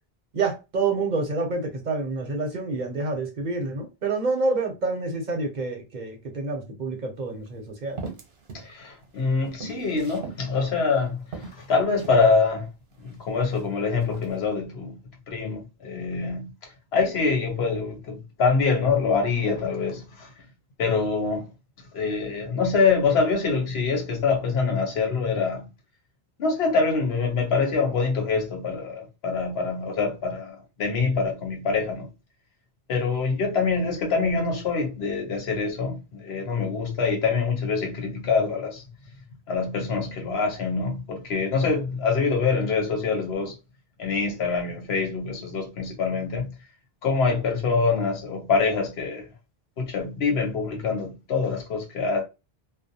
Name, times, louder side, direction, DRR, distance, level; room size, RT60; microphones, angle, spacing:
voice 1, 0.3-8.0, right 3 dB, 50° right, 0.7 m, -28 dB
sound 1, 7.2-7.3 8.0-8.7 9.0-10.4 10.9-11.0 11.3-12.3 13.0-13.6 14.0-14.4, right 4 dB, 80° right, 0.9 m, -39 dB
voice 2, 8.5-12.7 13.0-15.0 15.3-16.5 16.9-20.3 20.8-21.5 21.9-25.7 26.4-32.1 32.9-38.8 39.5-43.5 44.0-46.5 47.0-49.2 49.8-52.2, left 4 dB, 85° left, 1.1 m, -25 dB
2.5 x 2.0 x 2.7 m
omnidirectional pair, 1.0 m